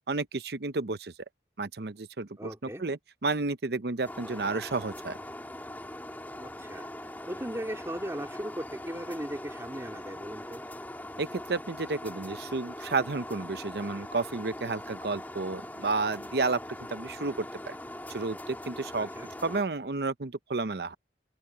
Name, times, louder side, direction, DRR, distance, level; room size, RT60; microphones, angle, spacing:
voice 1, 0.1-1.1 1.6-5.1 11.2-16.6 16.9-17.8 18.1-19.1 19.4-20.9, right 3 dB, 65° right, 0.8 m, -31 dB
voice 2, 2.4-2.8 6.4-10.6 19.0-19.3, equal, 15° right, 3.1 m, -38 dB
sound 1, 4.0-19.6, left 1 dB, 10° left, 3.4 m, -42 dB
head